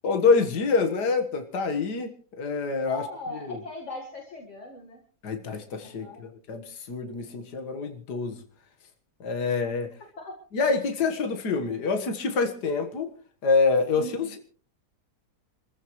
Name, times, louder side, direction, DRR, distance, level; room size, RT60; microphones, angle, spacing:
voice 1, 0.0-3.0 3.4-3.6 5.2-8.4 9.2-9.9 10.5-13.1 13.4-14.4, left 4 dB, 70° left, 5 dB, 2.1 m, -26 dB
voice 2, 2.9-5.0 5.8-6.3 10.2-10.3 14.0-14.3, left 2 dB, 45° left, 0 dB, 2.2 m, -39 dB
27.5 x 14.5 x 3.1 m, 0.43 s
omnidirectional pair, 1.8 m